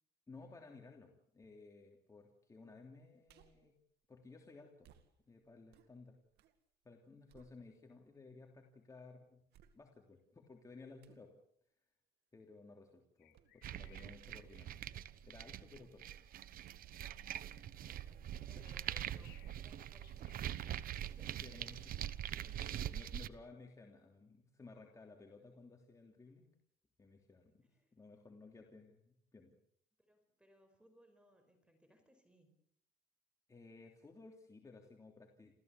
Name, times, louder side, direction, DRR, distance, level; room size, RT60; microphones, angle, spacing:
voice 1, 0.3-3.7 4.1-4.9 5.3-6.2 6.8-9.5 9.7-11.3 12.3-14.9 15.2-16.1 17.3-17.6 18.5-18.7 21.4-22.0 22.3-26.5 27.0-29.5 33.5-35.5, left 3 dB, 20° left, 2 dB, 3.2 m, -57 dB
sound 1, 3.3-3.7 4.8-6.6 7.0-8.1 8.6-8.7 9.5-10.2 11.0-11.3 13.3-13.6 13.9-14.3 14.7-15.3 15.7-16.0 16.6-18.3 18.7-18.8, right 9 dB, 80° right, 2.1 m, -68 dB
sound 2, 13.2-14.7 15.0-15.5 18.4-20.8, left 14 dB, 80° left, 2.5 m, -67 dB
sound 3, 13.6-23.3, right 11 dB, 60° right, 1.0 m, -44 dB
voice 2, 17.3-22.6 23.3-23.5 26.3-26.4 27.6-27.9 30.0-32.5, equal, 5° right, 7 dB, 5.1 m, -69 dB
29.5 x 15.0 x 8.2 m, 0.71 s
cardioid pair, 110°, 17 cm